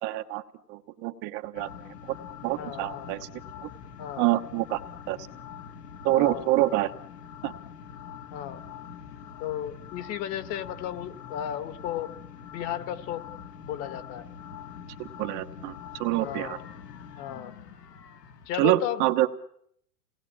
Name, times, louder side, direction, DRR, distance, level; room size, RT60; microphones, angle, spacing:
voice 1, 0.0-0.4 0.7-1.7 2.0-2.2 2.4-3.3 3.6-3.7 4.2-4.8 5.1-5.2 6.0-6.9 7.4-7.5 15.0-16.6 18.6-19.3, right 16 dB, 35° right, 7 dB, 1.1 m, -26 dB
sound 1, 1.5-18.5, left 8 dB, 75° left, 2.7 m, -44 dB
voice 2, 2.6-3.1 4.0-4.3 6.1-6.6 8.3-8.6 9.4-12.1 12.5-13.2 13.6-14.3 16.2-16.6 17.2-17.5 18.4-19.1, left 10 dB, 30° left, 11 dB, 1.6 m, -34 dB
28.0 x 19.5 x 8.7 m, 0.71 s
hypercardioid pair, 140°, 48 cm